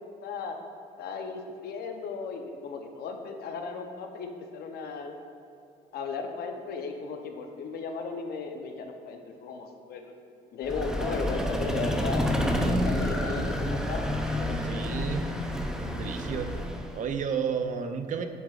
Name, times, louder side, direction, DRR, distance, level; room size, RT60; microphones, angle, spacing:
voice 1, 0.2-0.6 1.0-5.1 5.9-10.1 10.5-12.3 12.7-14.0 14.3-15.2, left 5 dB, 70° left, 5 dB, 0.8 m, -36 dB
Vehicle, 10.6-17.1, equal, 5° right, 0.6 m, -29 dB
voice 2, 14.6-15.2 15.9-16.5 16.9-18.2, right 7 dB, 50° right, 7 dB, 0.5 m, -31 dB
8.1 x 7.3 x 2.5 m, 2.6 s
cardioid pair, 110°, 17 cm